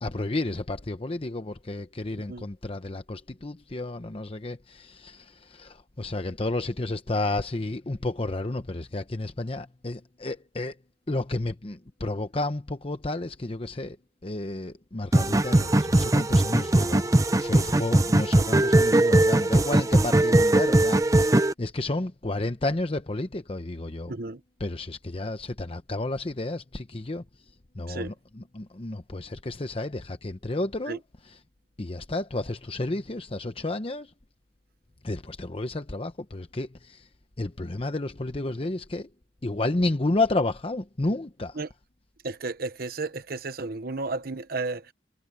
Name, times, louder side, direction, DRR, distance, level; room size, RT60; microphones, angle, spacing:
voice 1, 0.0-10.8 11.1-14.0 14.2-17.1 17.4-24.1 24.6-27.2 27.7-31.0 31.3-31.4 31.8-34.1 35.0-37.1 37.4-39.1 39.4-41.6, left 2 dB, 30° left, 0.8 m, -31 dB
sound 1, 15.1-21.5, right 1 dB, 20° right, 0.7 m, -20 dB
voice 2, 24.1-24.4 27.9-28.1 30.9-31.0 41.5-41.7 42.2-44.9, right 3 dB, 55° right, 1.0 m, -33 dB
head